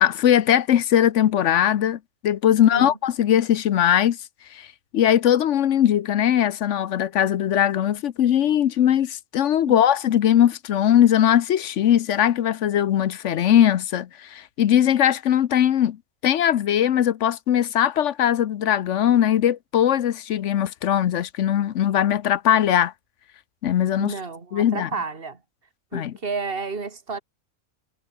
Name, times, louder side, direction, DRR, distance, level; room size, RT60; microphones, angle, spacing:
voice 1, 0.0-4.2 4.5-4.7 4.9-16.0 16.2-22.9 23.6-24.1 24.5-24.9 25.9-26.1, left 10 dB, 65° left, 1.0 m, -20 dB
voice 2, 24.0-25.4 25.9-27.2, right 4 dB, 40° right, 2.5 m, -31 dB
omnidirectional pair, 1.4 m